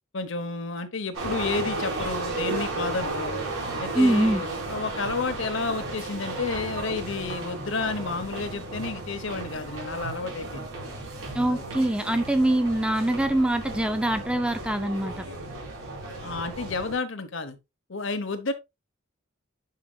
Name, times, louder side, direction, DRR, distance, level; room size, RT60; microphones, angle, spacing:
voice 1, 0.1-3.4 3.8-10.7 11.4-11.6 16.2-17.6 17.9-18.5, left 4 dB, 60° left, 1.0 m, -31 dB
sound 1, 1.1-16.9, right 2 dB, 70° right, 4.4 m, -34 dB
voice 2, 3.9-4.4 11.3-15.2, right 1 dB, 5° right, 0.4 m, -24 dB
9.5 x 5.0 x 2.3 m
head